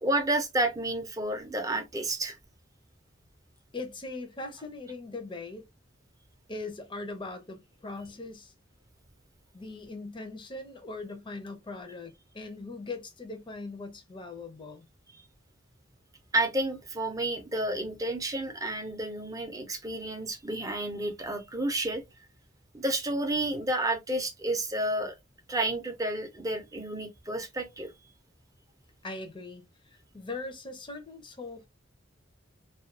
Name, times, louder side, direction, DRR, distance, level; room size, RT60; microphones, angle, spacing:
voice 1, 0.0-2.4 16.3-22.0 22.7-25.1 25.5-27.9, right 1 dB, 20° right, 0.5 m, -30 dB
voice 2, 3.7-5.6 6.5-8.5 9.5-14.8 29.0-31.7, left 3 dB, 25° left, 0.6 m, -40 dB
2.4 x 2.2 x 2.4 m
head